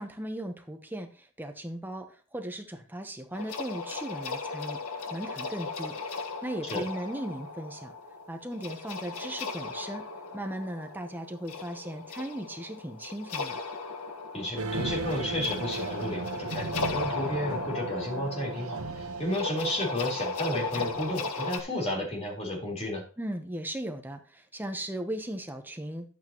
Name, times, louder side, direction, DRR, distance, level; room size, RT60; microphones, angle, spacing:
voice 1, 0.0-7.9 8.3-10.0 10.3-13.6 23.2-26.1, right 1 dB, 10° right, 5 dB, 1.0 m, -37 dB
sound 1, 3.3-21.6, left 4 dB, 80° left, 1.5 m, -37 dB
voice 2, 14.3-23.0, left 1 dB, 30° left, -1 dB, 4.1 m, -32 dB
sound 2, 14.6-21.2, right 3 dB, 80° right, 1.1 m, -37 dB
11.0 x 8.5 x 3.0 m, 0.37 s
head